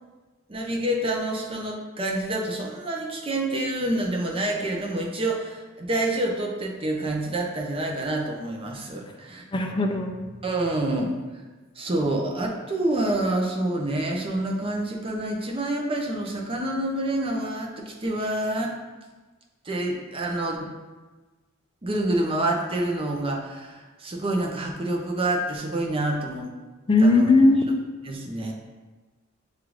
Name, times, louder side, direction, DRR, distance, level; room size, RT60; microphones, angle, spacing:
voice 1, 0.5-9.6 10.4-11.1 11.8-18.8 19.6-20.7 21.8-26.5 27.0-27.3 28.1-28.5, right 1 dB, 30° right, 0 dB, 0.6 m, -27 dB
voice 2, 9.5-10.1 26.9-27.6, left 2 dB, 25° left, 4 dB, 0.4 m, -18 dB
6.4 x 2.4 x 3.1 m, 1.3 s
head